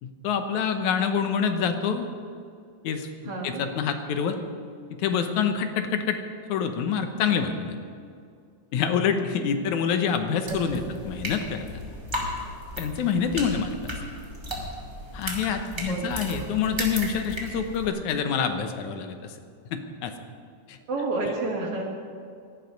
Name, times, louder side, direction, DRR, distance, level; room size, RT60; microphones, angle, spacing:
voice 1, 0.0-2.1 2.8-4.4 4.9-6.2 6.5-7.8 8.7-11.7 12.8-13.8 15.1-19.4 19.7-20.1 20.7-20.8, left 7 dB, 80° left, 7 dB, 2.4 m, -26 dB
voice 2, 3.2-3.6 10.5-10.8 15.9-16.4 20.9-21.9, right 3 dB, 55° right, -1 dB, 2.9 m, -30 dB
sound 1, 10.5-17.9, equal, 10° right, 2.2 m, -35 dB
17.5 x 11.5 x 5.2 m, 2.3 s
omnidirectional pair, 3.4 m